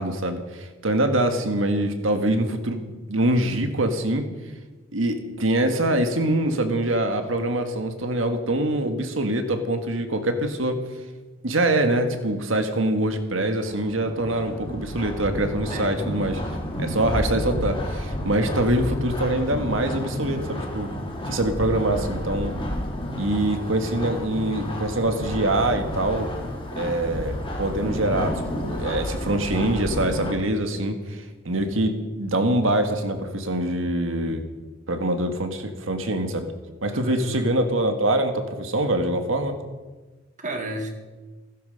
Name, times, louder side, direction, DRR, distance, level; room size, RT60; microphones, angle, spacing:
voice 1, 0.0-4.2 4.9-10.8 11.4-16.4 16.8-20.9 21.2-22.5 23.2-26.3 26.8-34.4 34.9-36.5 36.8-39.6, right 1 dB, 75° right, 7 dB, 1.8 m, -24 dB
sound 1, 13.6-30.3, equal, 25° left, 3.1 m, -31 dB
voice 2, 36.9-37.5 40.4-41.0, right 1 dB, 40° right, 4 dB, 2.2 m, -32 dB
16.0 x 15.0 x 5.4 m, 1.3 s
head